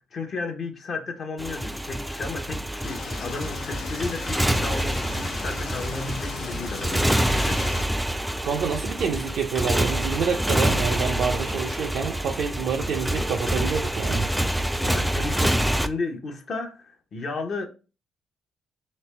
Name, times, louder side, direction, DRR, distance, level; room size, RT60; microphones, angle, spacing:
voice 1, 0.1-8.0 14.8-17.7, left 3 dB, 55° left, 0.7 m, -34 dB
Motorcycle, 1.4-15.9, right 1 dB, 5° right, 0.3 m, -26 dB
sound 1, 2.8-7.9, left 7 dB, 75° left, 0.3 m, -37 dB
voice 2, 8.4-14.3, right 6 dB, 70° right, 0.5 m, -27 dB
3.2 x 2.9 x 3.2 m
cardioid pair, 90°, 0 cm